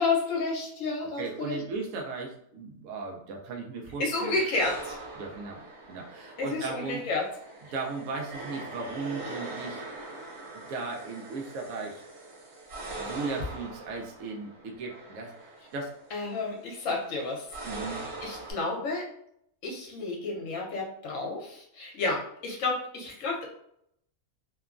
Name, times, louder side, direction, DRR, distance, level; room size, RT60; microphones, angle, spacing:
voice 1, 0.0-1.6 4.0-5.0 6.4-7.3 16.1-19.1 19.6-23.5, left 3 dB, 65° left, -1 dB, 1.1 m, -31 dB
voice 2, 1.2-4.3 5.2-5.6 5.9-7.0 7.7-9.8 10.5-12.0 13.0-15.9 17.6-18.0, right 4 dB, 70° right, 1 dB, 0.9 m, -36 dB
sound 1, 4.6-18.5, right 2 dB, 90° right, 1.3 m, -42 dB
2.9 x 2.2 x 2.4 m, 0.71 s
omnidirectional pair, 1.5 m